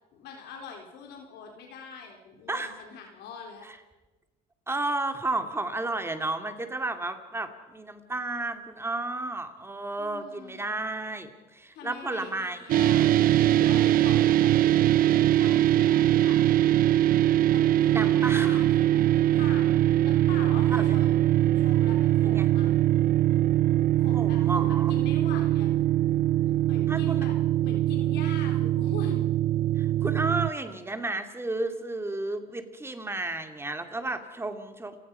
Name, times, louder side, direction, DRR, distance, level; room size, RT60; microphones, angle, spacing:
voice 1, 0.1-3.7 10.0-10.8 11.7-13.2 13.5-14.5 15.3-16.4 17.5-19.8 20.0-21.1 21.6-22.7 24.0-25.7 26.7-27.3 27.6-29.2, left 5 dB, 80° left, 2 dB, 4.0 m, -43 dB
voice 2, 4.7-12.6 17.9-18.6 20.7-20.9 22.2-22.5 24.1-24.9 26.9-27.3 29.8-35.0, right 2 dB, 15° right, 7 dB, 2.3 m, -32 dB
sound 1, 12.7-30.5, right 13 dB, 60° right, 0.6 m, -22 dB
29.5 x 17.5 x 5.5 m, 1.1 s
cardioid pair, 110°, 17 cm